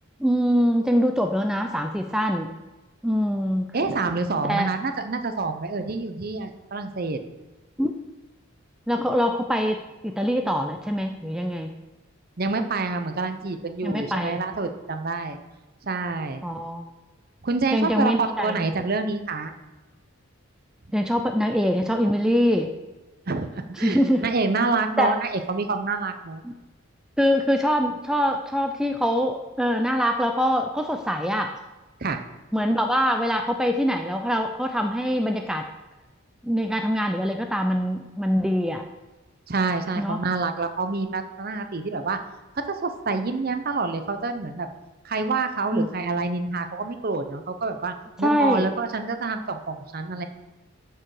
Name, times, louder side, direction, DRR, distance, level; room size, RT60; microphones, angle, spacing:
voice 1, 0.2-2.5 3.0-3.7 4.4-4.7 7.8-8.0 8.9-9.8 10.0-11.7 13.8-14.4 16.4-16.8 17.7-18.6 20.9-22.7 23.8-24.3 25.0-25.1 26.4-26.5 27.2-31.6 32.5-35.6 36.4-38.8 40.0-40.2 45.7-45.9 48.2-48.7, equal, 5° right, 4 dB, 0.4 m, -23 dB
voice 2, 3.7-7.2 12.4-15.4 15.8-16.4 17.4-19.5 23.3-26.4 32.0-32.2 39.5-42.2 42.8-44.7 45.0-50.2, right 3 dB, 45° right, 8 dB, 0.7 m, -27 dB
13.5 x 4.6 x 4.9 m, 1.1 s
head